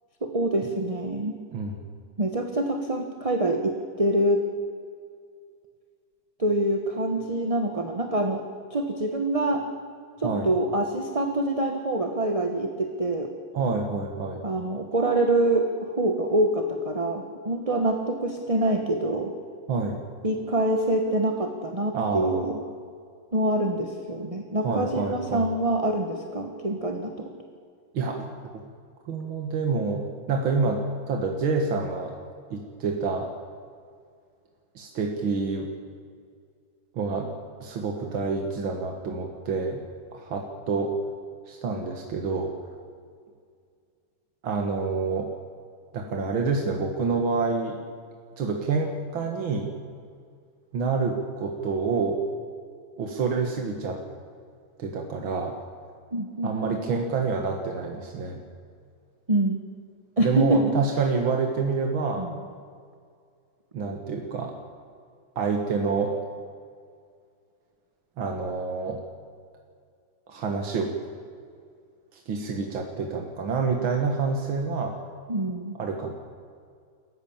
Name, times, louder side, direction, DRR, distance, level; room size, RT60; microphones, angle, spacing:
voice 1, 0.2-1.4 2.2-4.5 6.4-8.4 8.7-9.7 10.2-13.3 14.4-19.3 20.2-22.6 23.3-27.3 56.1-56.8 59.3-59.6 60.2-60.7 62.2-62.3 75.3-75.8, right 1 dB, 20° right, 4 dB, 1.4 m, -25 dB
voice 2, 13.5-14.4 19.7-20.0 21.9-22.4 24.6-25.5 27.9-28.6 29.1-32.1 32.5-33.3 34.8-35.7 36.9-37.3 37.6-39.8 40.1-40.9 41.5-42.5 44.4-45.3 45.9-47.8 48.4-49.7 50.7-52.2 53.0-54.0 54.8-55.6 56.4-58.4 60.2-62.3 63.7-64.6 65.4-66.1 68.2-69.0 70.3-70.9 72.1-75.0 75.8-76.1, right 4 dB, 85° right, 2 dB, 2.5 m, -27 dB
28.0 x 15.0 x 7.3 m, 2.2 s
omnidirectional pair, 2.1 m